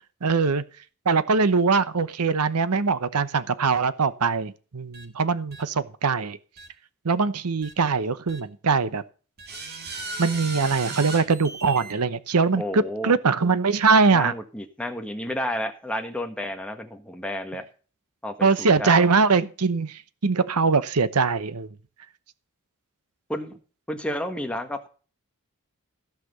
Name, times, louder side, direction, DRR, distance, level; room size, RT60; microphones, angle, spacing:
voice 1, 0.2-0.6 1.1-6.4 7.0-9.0 10.2-14.3 18.4-21.7, right 4 dB, 85° right, 15 dB, 0.9 m, -22 dB
sound 1, 4.9-5.1 5.5-5.6 6.6-6.7 7.6-7.7 8.3-8.4 9.4-11.9, right 3 dB, 45° right, 1.9 m, -36 dB
voice 2, 12.5-13.2 14.1-17.6 18.2-19.1 23.3-23.6 23.9-24.9, left 1 dB, 5° left, 5 dB, 1.4 m, -31 dB
14.5 x 5.9 x 6.7 m, 0.38 s
head